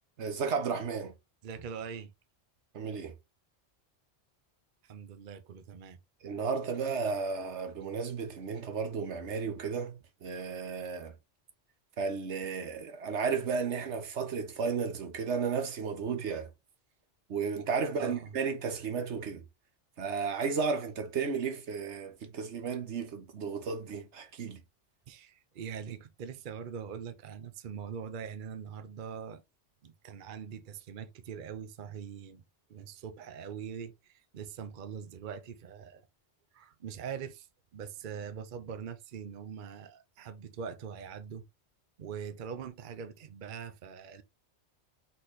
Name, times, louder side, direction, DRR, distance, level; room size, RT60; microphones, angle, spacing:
voice 1, 0.2-1.1 2.7-3.1 6.2-11.1 12.0-16.5 17.3-19.4 20.0-24.6, right 5 dB, 80° right, 1.3 m, -33 dB
voice 2, 1.4-2.1 4.8-6.0 17.9-18.4 25.1-29.4 29.8-32.4 32.7-36.1 36.5-37.5 37.7-41.5 42.0-44.2, right 7 dB, 50° right, 0.7 m, -42 dB
4.1 x 4.1 x 3.1 m
omnidirectional pair, 1.2 m